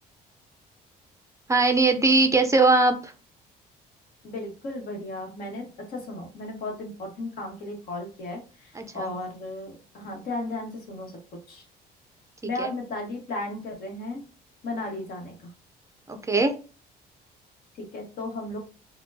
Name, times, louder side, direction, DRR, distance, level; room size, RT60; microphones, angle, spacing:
voice 1, 1.5-3.1 8.8-9.1 12.6-12.7 16.1-16.5, right 3 dB, 20° right, 7 dB, 0.4 m, -21 dB
voice 2, 4.2-11.1 11.5-11.6 12.4-14.2 14.6-15.5 17.9-18.6, left 2 dB, 60° left, 1 dB, 1.3 m, -35 dB
4.2 x 2.2 x 2.7 m, 0.35 s
cardioid pair, 110°, 17 cm